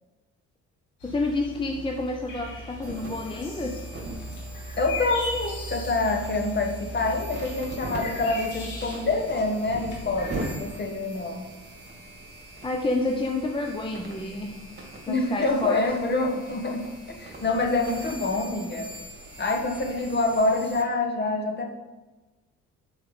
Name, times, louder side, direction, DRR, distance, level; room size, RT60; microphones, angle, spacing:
sound 1, 1.0-10.5, equal, 80° left, 2.2 m, -38 dB
voice 1, 1.0-3.8 12.6-14.6 15.0-15.8, left 2 dB, 15° left, 2 dB, 0.7 m, -29 dB
sound 2, 2.8-20.8, right 1 dB, 35° right, 2.3 m, -41 dB
voice 2, 4.8-11.5 15.1-18.9 19.4-21.7, left 2 dB, 35° left, 2 dB, 1.3 m, -26 dB
6.5 x 4.7 x 5.6 m, 1.1 s
cardioid pair, 90°, 30 cm